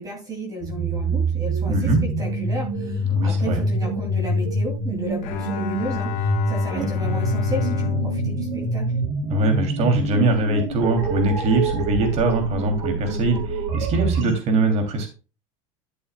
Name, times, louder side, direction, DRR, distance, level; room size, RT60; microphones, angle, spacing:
voice 1, 0.0-8.9, right 1 dB, 20° right, 1 dB, 2.6 m, -33 dB
sound 1, 0.6-14.3, right 2 dB, 90° right, 5.3 m, -26 dB
voice 2, 1.7-2.0 3.1-3.6 6.7-6.9 9.3-15.1, right 2 dB, 40° right, 5 dB, 2.8 m, -22 dB
Bowed string instrument, 5.2-9.7, left 8 dB, 50° left, 1.5 m, -29 dB
12.5 x 7.0 x 2.2 m, 0.32 s
supercardioid pair, 140°, 17 cm